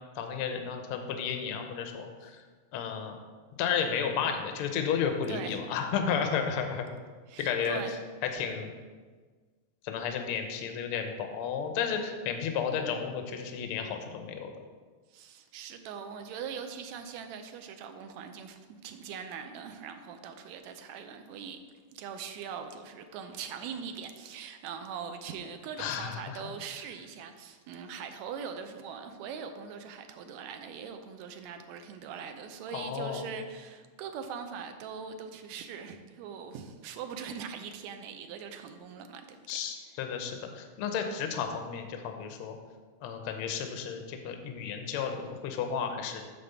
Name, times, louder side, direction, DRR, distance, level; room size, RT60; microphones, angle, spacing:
voice 1, 0.1-2.4 2.7-3.2 3.6-6.9 7.4-7.8 8.3-8.7 9.8-14.5 25.8-26.5 32.7-33.3 39.5-42.6 43.0-46.2, left 7 dB, 75° left, 5 dB, 1.3 m, -32 dB
voice 2, 7.3-8.0 15.1-21.6 21.9-39.6, right 6 dB, 75° right, 7 dB, 1.8 m, -41 dB
9.2 x 3.8 x 6.8 m, 1.5 s
omnidirectional pair, 3.5 m